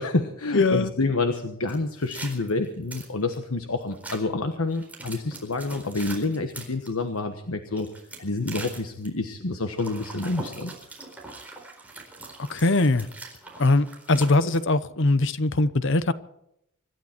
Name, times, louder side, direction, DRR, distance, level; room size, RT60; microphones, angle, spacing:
voice 1, 0.0-7.9 8.2-10.7, left 2 dB, 90° left, 1.3 m, -28 dB
voice 2, 0.5-0.9 12.5-13.1 13.6-16.1, left 2 dB, 60° left, 0.9 m, -21 dB
sound 1, 1.7-3.4 3.9-4.2 4.7-6.9 7.7-9.1 9.7-14.6, right 3 dB, 10° right, 4.3 m, -41 dB
25.5 x 12.5 x 4.5 m
head